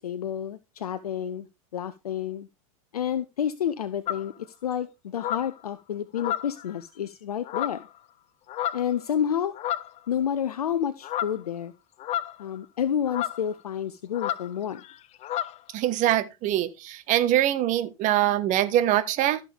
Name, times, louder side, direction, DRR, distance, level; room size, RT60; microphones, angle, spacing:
voice 1, 0.0-1.5 1.7-2.5 2.9-7.9 8.7-9.5 10.1-11.7 12.4-14.8, left 9 dB, 80° left, 0.8 m, -29 dB
sound 1, 4.1-4.3 5.2-5.5 6.2-6.7 7.5-7.9 8.5-8.9 9.5-10.0 11.0-11.4 12.0-12.6 13.1-13.4 14.1-14.5 14.8-15.0 15.2-15.6, left 12 dB, 35° left, 0.8 m, -31 dB
voice 2, 15.7-19.4, right 12 dB, 40° right, 1.4 m, -23 dB
14.0 x 6.7 x 3.5 m
hypercardioid pair, 95°, 19 cm